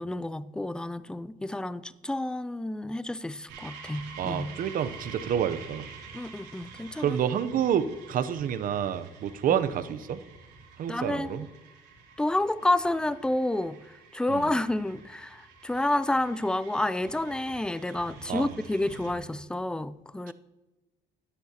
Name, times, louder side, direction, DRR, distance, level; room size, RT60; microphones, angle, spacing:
voice 1, 0.0-4.5 6.1-7.2 9.5-9.6 10.9-11.5 12.2-13.8 14.1-20.3, left 1 dB, 5° left, 16 dB, 0.4 m, -29 dB
sound 1, 3.5-19.1, right 5 dB, 90° right, 2.9 m, -48 dB
voice 2, 4.2-5.9 7.0-10.2 10.8-11.5 14.3-14.5 18.3-18.5 20.3-20.4, right 9 dB, 55° right, 13 dB, 0.7 m, -28 dB
13.0 x 10.0 x 2.9 m, 1.1 s
cardioid pair, 110°, 17 cm